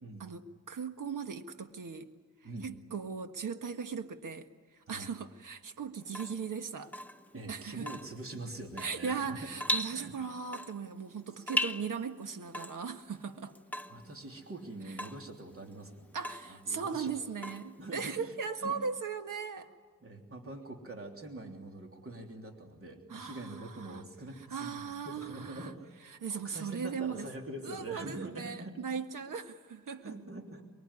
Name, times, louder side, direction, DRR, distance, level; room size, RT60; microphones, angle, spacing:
voice 1, 0.2-2.1 2.6-4.5 4.9-6.9 7.5-7.9 8.8-13.6 16.1-19.7 23.1-24.0 24.4-25.7 26.2-27.3 27.6-30.2, right 6 dB, 65° right, 1.6 m, -38 dB
Water tap faucet / Drip, 6.0-18.2, left 1 dB, 5° left, 1.1 m, -40 dB
voice 2, 7.3-9.5 9.9-10.1 11.4-11.5 13.9-16.1 16.5-17.1 17.4-17.5 17.8-18.8 19.6-19.7 20.0-25.9 26.3-28.8 29.9-30.6, right 2 dB, 40° right, 3.3 m, -44 dB
23.5 x 23.0 x 9.8 m
cardioid pair, 80°, 34 cm